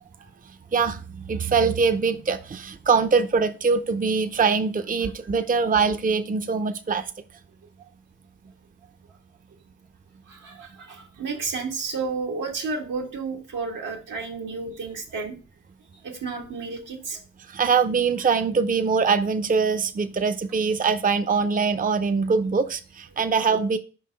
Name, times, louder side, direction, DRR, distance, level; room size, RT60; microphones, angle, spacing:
voice 1, 0.7-7.1 17.5-23.8, right 5 dB, 30° right, 0.5 m, -23 dB
voice 2, 10.3-15.3 16.0-17.2, right 4 dB, 85° right, 1.6 m, -32 dB
5.1 x 3.8 x 5.1 m
cardioid pair, 50°, 30 cm